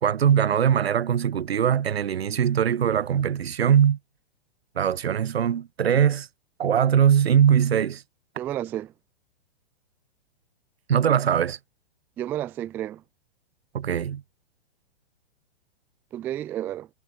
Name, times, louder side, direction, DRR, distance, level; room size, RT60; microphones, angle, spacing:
voice 1, 0.0-4.0 4.8-6.3 6.6-8.0 10.9-11.6 13.7-14.2, right 8 dB, 85° right, 2.6 m, -21 dB
voice 2, 8.4-8.9 12.2-13.0 16.1-16.9, right 12 dB, 5° right, 0.3 m, -31 dB
hypercardioid pair, 150°, 30 cm